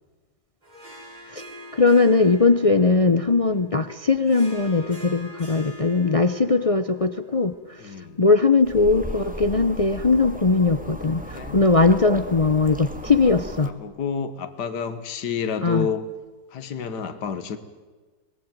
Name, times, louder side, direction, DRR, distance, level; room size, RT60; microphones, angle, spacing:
Harp, 0.6-9.3, left 1 dB, 25° right, 5.2 m, -44 dB
voice 1, 1.7-7.8 8.2-13.7 15.6-15.9, left 3 dB, 50° left, 11 dB, 0.4 m, -20 dB
voice 2, 7.8-8.2 11.3-11.6 13.6-16.1 16.5-17.6, left 6 dB, 75° left, 9 dB, 2.0 m, -30 dB
sound 1, 8.6-13.7, equal, 5° right, 1.7 m, -36 dB
24.0 x 20.0 x 9.1 m, 1.3 s
omnidirectional pair, 1.8 m